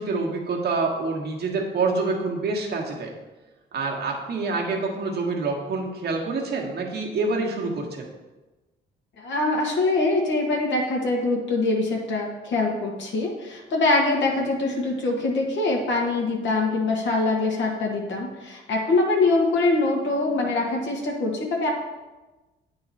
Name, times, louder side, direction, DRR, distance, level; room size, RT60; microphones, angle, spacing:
voice 1, 0.0-3.1 3.7-8.1, right 3 dB, 55° right, 0 dB, 1.5 m, -27 dB
voice 2, 9.2-21.7, left 2 dB, 65° left, -1 dB, 1.4 m, -23 dB
8.7 x 3.9 x 4.2 m, 1.1 s
cardioid pair, 90°, 20 cm